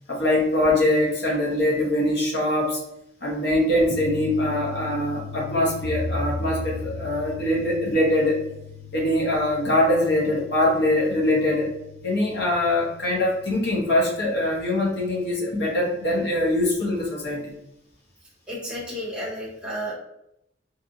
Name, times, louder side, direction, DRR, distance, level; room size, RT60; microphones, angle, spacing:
voice 1, 0.1-2.8 3.2-8.4 8.9-11.7 12.0-17.5, left 1 dB, 60° left, -3 dB, 0.7 m, -23 dB
sound 1, 3.9-16.8, left 7 dB, 40° right, 0.4 m, -41 dB
sound 2, 5.8-8.0, left 1 dB, 20° left, 1.1 m, -32 dB
voice 2, 18.5-19.9, equal, 5° right, -6 dB, 0.7 m, -32 dB
2.7 x 2.4 x 2.6 m, 0.80 s
head